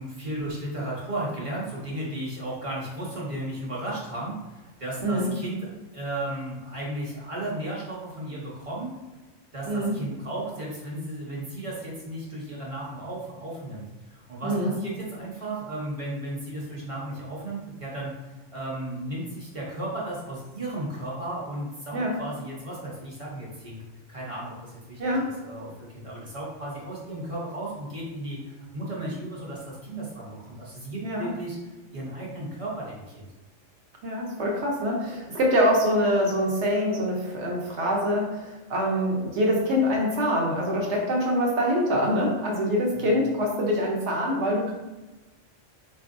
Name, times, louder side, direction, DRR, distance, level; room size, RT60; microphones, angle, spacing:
voice 1, 0.0-8.9 9.5-18.1 18.5-23.8 24.1-31.6 31.9-33.3 42.9-43.1, right 1 dB, 30° right, -5 dB, 0.8 m, -35 dB
voice 2, 14.4-14.7 21.9-22.2 25.0-25.3 31.0-31.3 34.0-44.7, equal, 65° right, -1 dB, 1.0 m, -25 dB
4.3 x 2.7 x 2.5 m, 1.1 s
omnidirectional pair, 1.3 m